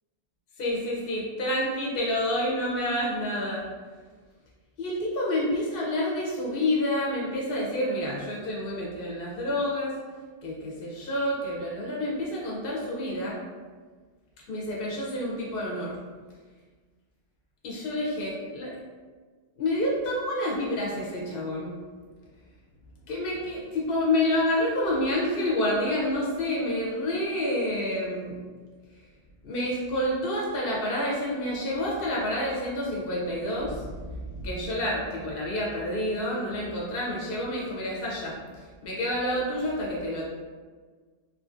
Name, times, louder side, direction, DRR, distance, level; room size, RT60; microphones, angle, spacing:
voice 1, 0.6-3.6 4.8-9.9 10.4-13.4 14.5-16.0 17.6-18.7 19.6-21.7 23.1-28.4 29.4-40.3, left 1 dB, 55° left, -4 dB, 0.8 m, -28 dB
2.8 x 2.5 x 2.4 m, 1.5 s
omnidirectional pair, 1.2 m